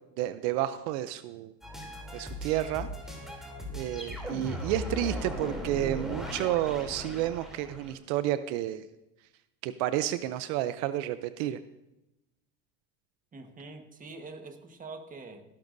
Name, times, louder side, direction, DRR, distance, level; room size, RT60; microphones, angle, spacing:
voice 1, 0.2-1.5 2.1-2.9 3.7-8.9 9.6-11.6, right 13 dB, 75° right, 13 dB, 0.7 m, -31 dB
sound 1, 1.6-7.9, equal, ahead, 3.1 m, -38 dB
voice 2, 13.3-15.4, right 3 dB, 20° right, 5 dB, 1.4 m, -45 dB
16.5 x 11.5 x 2.7 m, 0.93 s
supercardioid pair, 120°, 37 cm